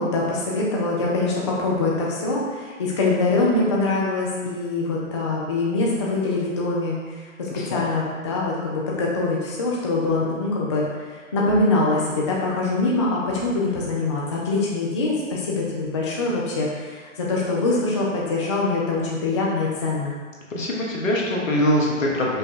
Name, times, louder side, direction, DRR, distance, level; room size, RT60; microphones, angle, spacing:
voice 1, 0.0-20.1, left 2 dB, 25° left, -4 dB, 0.4 m, -24 dB
voice 2, 7.5-7.8 20.5-22.4, equal, 75° left, -2 dB, 1.2 m, -23 dB
5.3 x 2.3 x 4.2 m, 1.5 s
figure-of-eight pair, 130°, 40 cm